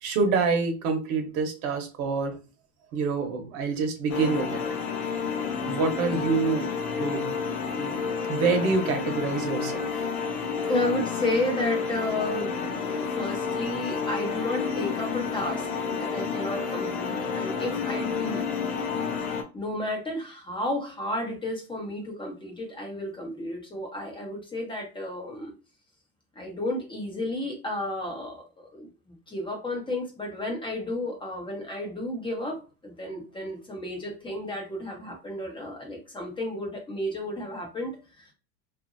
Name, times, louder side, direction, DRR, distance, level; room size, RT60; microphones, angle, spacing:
voice 1, 0.0-2.3 2.9-4.6 5.4-6.7 7.0-7.4 7.8-9.9, right 4 dB, 60° right, 4 dB, 1.1 m, -27 dB
sound 1, 4.1-19.4, left 5 dB, 50° left, 0.7 m, -30 dB
voice 2, 6.0-6.4 10.7-18.4 19.5-25.5 26.3-38.3, left 1 dB, 10° left, 1 dB, 0.9 m, -32 dB
2.6 x 2.6 x 2.6 m, 0.33 s
supercardioid pair, 125°, 45 cm